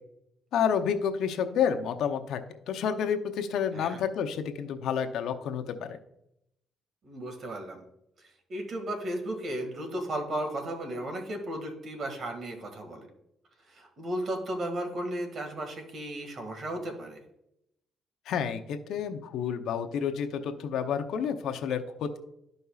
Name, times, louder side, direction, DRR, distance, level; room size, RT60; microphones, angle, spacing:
voice 1, 0.5-2.4 2.7-6.0 18.3-22.2, left 7 dB, 80° left, 6 dB, 0.7 m, -29 dB
voice 2, 7.0-7.8 8.5-13.1 13.7-17.2, right 1 dB, 55° right, 4 dB, 1.9 m, -35 dB
12.5 x 5.3 x 2.4 m, 0.80 s
cardioid pair, 90°, 0 cm